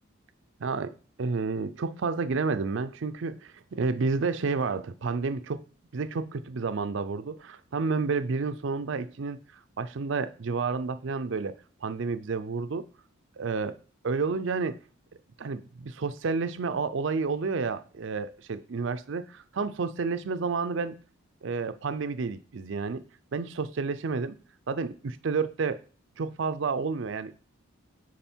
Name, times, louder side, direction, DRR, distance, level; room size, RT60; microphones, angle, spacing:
voice 1, 0.6-5.6 5.9-9.4 9.8-11.5 11.8-12.8 13.4-13.7 14.0-14.8 15.4-19.2 19.6-21.0 21.4-23.0 23.3-24.4 24.7-25.8 26.2-27.3, right 4 dB, 60° right, 12 dB, 0.4 m, -30 dB
9.0 x 4.8 x 4.4 m, 0.38 s
head